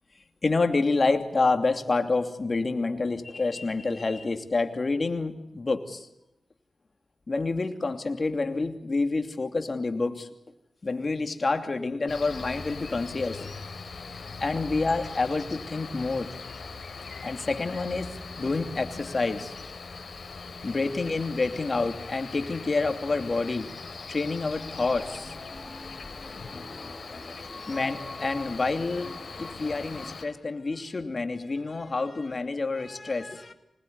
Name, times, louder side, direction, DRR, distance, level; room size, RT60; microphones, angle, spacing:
voice 1, 0.4-6.1 7.3-10.3 10.8-13.5 14.4-16.3 17.2-19.5 20.6-23.7 24.1-25.4 27.7-33.5, left 3 dB, 50° left, 7 dB, 2.8 m, -28 dB
Cricket, 12.1-30.3, left 4 dB, 65° left, 3.6 m, -41 dB
sound 1, 24.4-30.1, left 2 dB, 25° left, 2.7 m, -44 dB
25.5 x 20.0 x 9.6 m, 0.85 s
cardioid pair, 50°, 0 cm